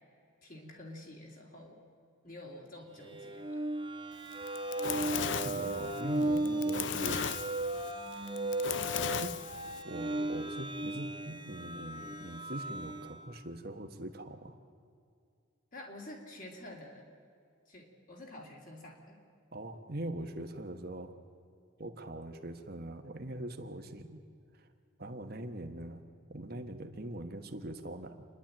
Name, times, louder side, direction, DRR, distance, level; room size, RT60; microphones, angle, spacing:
voice 1, 0.4-1.8 2.2-3.6 15.7-17.1 17.7-19.2, left 1 dB, 40° left, 1 dB, 3.1 m, -49 dB
sound 1, 3.0-13.3, right 1 dB, 20° right, 1.7 m, -36 dB
Fire, 4.3-9.8, left 8 dB, 55° left, 0.5 m, -36 dB
voice 2, 5.4-7.3 9.2-9.4 9.8-14.6 19.5-21.2 21.8-24.2 24.6-24.7 25.0-26.0 26.3-28.3, right 1 dB, 45° right, 6 dB, 1.3 m, -42 dB
28.5 x 11.5 x 8.9 m, 2.3 s
head